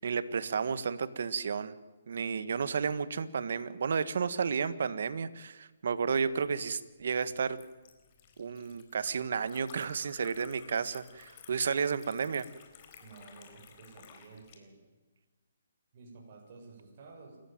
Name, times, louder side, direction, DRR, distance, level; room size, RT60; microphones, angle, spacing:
voice 1, 0.0-1.7 2.1-7.6 8.4-12.5, right 6 dB, 65° right, 14 dB, 1.5 m, -32 dB
Liquid, 6.2-14.6, left 8 dB, 35° left, 4.1 m, -56 dB
voice 2, 13.0-14.8 15.9-17.4, right 4 dB, 45° right, 0 dB, 7.1 m, -52 dB
28.5 x 14.5 x 9.2 m, 1.2 s
hypercardioid pair, 145°, 0 cm